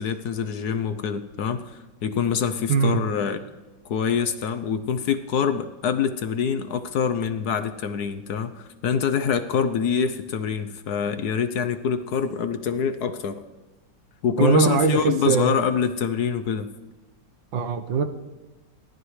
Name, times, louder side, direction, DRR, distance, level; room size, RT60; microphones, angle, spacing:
voice 1, 0.0-3.4 3.9-13.4 14.2-16.7, left 7 dB, 65° left, 10 dB, 1.2 m, -25 dB
voice 2, 2.7-3.1 14.4-15.6 17.5-18.0, right 6 dB, 85° right, 7 dB, 1.8 m, -21 dB
30.0 x 13.0 x 3.2 m, 1.1 s
omnidirectional pair, 2.1 m